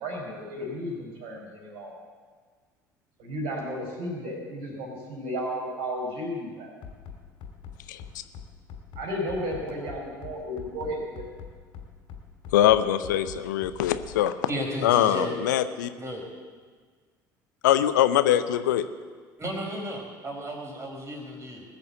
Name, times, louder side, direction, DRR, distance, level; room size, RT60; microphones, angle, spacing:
voice 1, 0.0-1.9 3.2-6.7 9.0-11.2, equal, 60° right, -1 dB, 5.1 m, -33 dB
Bass drum, 6.8-14.2, left 7 dB, 55° left, 2.8 m, -42 dB
voice 2, 12.5-14.5 14.8-15.9 17.6-18.9, left 11 dB, 70° left, 11 dB, 0.7 m, -22 dB
voice 3, 14.5-15.4 16.0-16.2 19.4-21.6, equal, 30° right, 1 dB, 4.5 m, -34 dB
20.0 x 6.9 x 8.1 m, 1.5 s
figure-of-eight pair, 60°, 10 cm